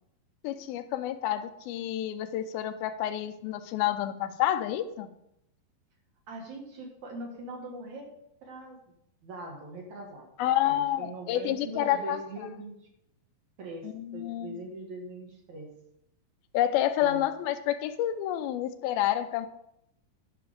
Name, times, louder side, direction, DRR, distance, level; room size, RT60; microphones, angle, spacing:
voice 1, 0.4-5.1 10.4-12.2 13.8-14.6 16.5-19.5, left 12 dB, 80° left, 9 dB, 2.5 m, -29 dB
voice 2, 6.3-8.1 8.4-8.9 9.2-10.3 10.6-12.9 13.6-15.7 17.0-17.2, right 2 dB, 55° right, 0 dB, 2.5 m, -41 dB
12.0 x 5.8 x 5.1 m, 0.79 s
omnidirectional pair, 4.5 m